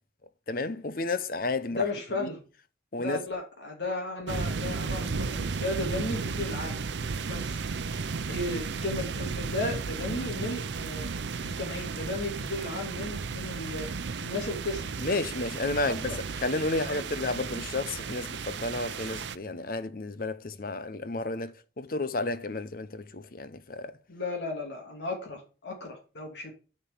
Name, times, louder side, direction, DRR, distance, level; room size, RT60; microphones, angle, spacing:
voice 1, 0.5-1.8 2.1-2.3 2.9-3.2 15.0-23.9, left 2 dB, 55° left, 0.8 m, -32 dB
voice 2, 1.7-2.4 3.0-6.8 7.3-7.6 8.3-11.1 11.4-13.9 14.2-15.0 15.7-16.2 16.7-17.0 24.1-26.5, left 2 dB, 80° left, 2.8 m, -35 dB
sound 1, 4.3-19.4, right 4 dB, 85° right, 0.6 m, -34 dB
7.0 x 5.5 x 7.3 m
head